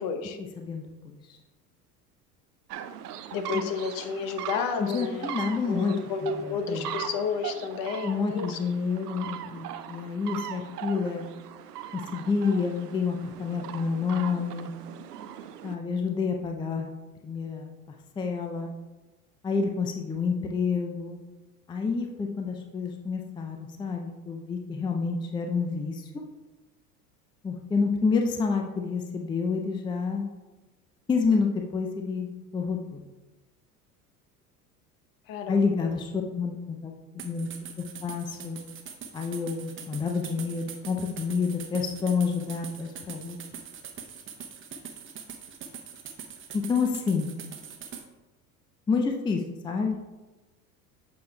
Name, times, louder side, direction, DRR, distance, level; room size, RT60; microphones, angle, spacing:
voice 1, 0.0-0.4 3.3-5.3 5.7-8.6 35.3-35.9, left 5 dB, 45° left, 7 dB, 0.9 m, -31 dB
voice 2, 0.6-1.4 3.5-3.6 4.8-7.0 8.0-11.3 11.9-14.7 15.6-16.9 17.2-17.7 18.2-18.7 19.4-21.2 21.7-26.0 27.4-30.3 31.1-32.3 32.5-33.0 35.5-37.5 37.8-38.6 39.1-43.4 46.5-47.3 48.9-50.2, left 5 dB, 10° left, 3 dB, 0.5 m, -29 dB
sound 1, 2.7-15.8, right 10 dB, 80° right, 0.5 m, -40 dB
sound 2, 37.2-48.1, right 7 dB, 25° right, 0.8 m, -43 dB
8.3 x 6.2 x 2.3 m, 1.1 s
figure-of-eight pair, 75°, 46 cm